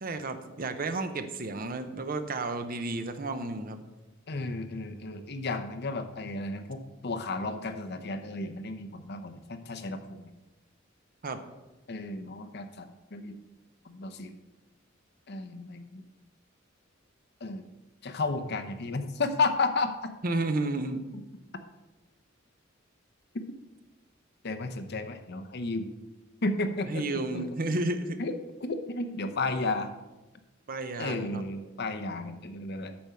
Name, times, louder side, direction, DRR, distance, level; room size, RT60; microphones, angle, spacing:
voice 1, 0.0-3.8 11.2-11.4 20.2-21.0 26.9-28.2 30.7-31.4, right 2 dB, 45° right, 9 dB, 0.7 m, -32 dB
voice 2, 4.3-10.3 11.9-13.4 13.8-14.3 15.3-16.0 17.4-17.6 18.0-20.1 24.4-25.9 26.4-27.0 27.3-27.5 28.2-28.3 28.6-29.9 31.0-32.9, left 3 dB, 55° left, 9 dB, 0.8 m, -33 dB
8.6 x 6.2 x 5.6 m, 1.1 s
head